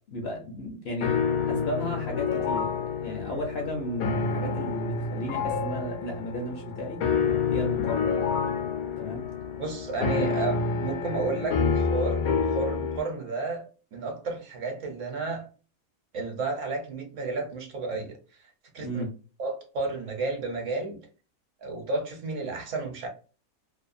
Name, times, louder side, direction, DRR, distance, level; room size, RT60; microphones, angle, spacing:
voice 1, 0.1-1.2 1.5-7.0 7.5-8.2 9.0-9.3 10.1-10.3 11.6-11.7 18.8-19.1, left 1 dB, 60° left, 1 dB, 0.7 m, -34 dB
sound 1, 1.0-13.0, left 5 dB, 75° left, 1.0 m, -28 dB
voice 2, 9.6-15.5 16.1-19.0 19.4-21.0 21.6-23.1, right 3 dB, 60° right, 3 dB, 1.0 m, -32 dB
2.7 x 2.2 x 2.4 m, 0.36 s
omnidirectional pair, 1.5 m